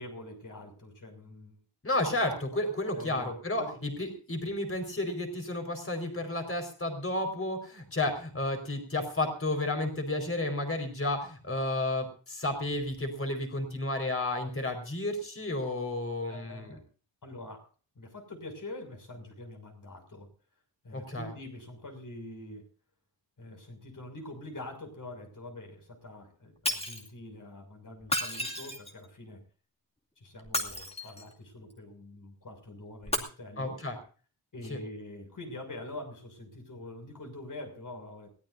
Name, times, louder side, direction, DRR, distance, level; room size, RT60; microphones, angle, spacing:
voice 1, 0.0-1.6 2.9-3.8 16.3-16.8 17.2-17.6 17.9-20.3 20.8-22.7 23.4-29.4 30.2-33.8 34.5-38.3, left 2 dB, 45° left, 4 dB, 6.5 m, -45 dB
voice 2, 1.8-16.8 20.9-21.3 33.6-34.0 34.7-34.8, left 2 dB, 30° left, 5 dB, 4.9 m, -32 dB
Shatter, 26.7-27.1 28.0-29.0 30.4-31.3 33.0-33.2, left 1 dB, 15° left, 2.4 m, -32 dB
22.0 x 18.5 x 2.7 m, 0.40 s
wide cardioid pair, 175°, 44 cm